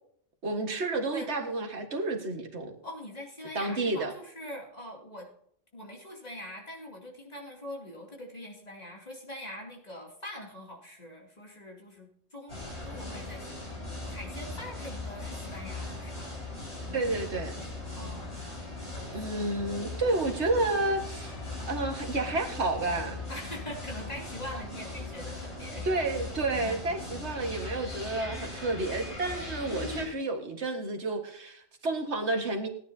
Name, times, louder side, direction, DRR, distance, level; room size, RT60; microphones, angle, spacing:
voice 1, 0.4-2.7 3.6-4.1 16.9-17.6 19.1-23.2 25.8-32.7, right 2 dB, 65° right, 3 dB, 2.0 m, -30 dB
voice 2, 2.8-5.3 5.7-13.8 14.0-16.3 17.9-18.3 19.1-19.2 23.3-26.3 26.6-26.9, left 1 dB, 35° left, 0 dB, 3.0 m, -43 dB
sound 1, 12.5-30.1, left 2 dB, 65° left, 5.3 m, -39 dB
17.5 x 9.9 x 2.8 m, 0.67 s
omnidirectional pair, 1.2 m